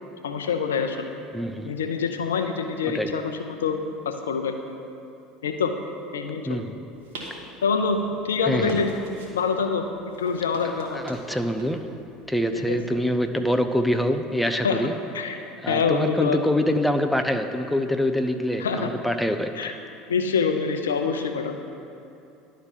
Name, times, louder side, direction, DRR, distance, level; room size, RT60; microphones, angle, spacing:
voice 1, 0.2-1.1 1.6-4.5 5.4-5.7 6.1-6.7 7.6-8.9 9.3-11.0 12.5-12.8 14.6-14.8 15.1-15.4 15.7-16.4 18.6-18.9 19.6-19.7 20.1-21.6, left 5 dB, 85° left, 6 dB, 0.6 m, -25 dB
voice 2, 1.3-1.8 2.9-3.1 6.5-6.8 8.5-8.8 10.9-11.8 12.3-14.9 15.6-19.7, equal, 5° left, 6 dB, 0.6 m, -25 dB
sound 1, 6.4-13.9, right 1 dB, 75° right, 1.4 m, -45 dB
11.0 x 3.8 x 7.3 m, 2.7 s
hypercardioid pair, 80°, 0 cm